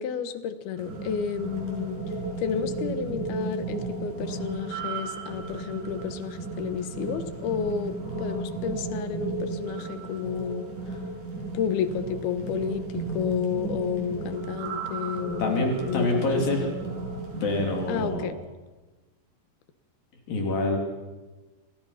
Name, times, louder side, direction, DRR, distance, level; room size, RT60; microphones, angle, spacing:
voice 1, 0.0-2.0 2.4-10.7 11.5-16.7 17.9-18.4, left 8 dB, 80° left, 11 dB, 3.3 m, -31 dB
sound 1, 0.8-18.1, right 3 dB, 55° right, 7.1 m, -34 dB
voice 2, 15.4-16.6 17.4-18.3 20.3-20.8, left 2 dB, 65° left, 1 dB, 4.7 m, -26 dB
29.0 x 24.5 x 5.8 m, 1.2 s
omnidirectional pair, 4.3 m